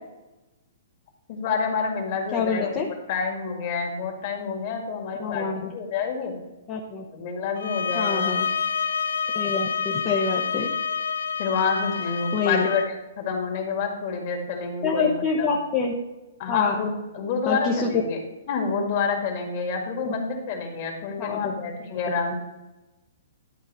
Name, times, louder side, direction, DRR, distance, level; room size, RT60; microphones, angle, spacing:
voice 1, 1.3-2.7 3.1-6.4 7.1-8.3 11.4-12.8 13.2-15.5 16.4-18.2 18.5-22.4, left 5 dB, 40° left, 1 dB, 1.9 m, -28 dB
voice 2, 2.3-2.9 5.2-5.7 6.7-7.0 7.9-8.5 9.3-10.7 12.3-12.7 14.8-15.9 16.5-16.7 17.5-17.9 20.0-20.1 21.2-21.4, left 5 dB, 20° left, -1 dB, 0.7 m, -26 dB
sound 1, 7.6-12.9, left 6 dB, 85° left, 0.5 m, -28 dB
11.5 x 3.9 x 5.4 m, 1.1 s
hypercardioid pair, 165°, 0 cm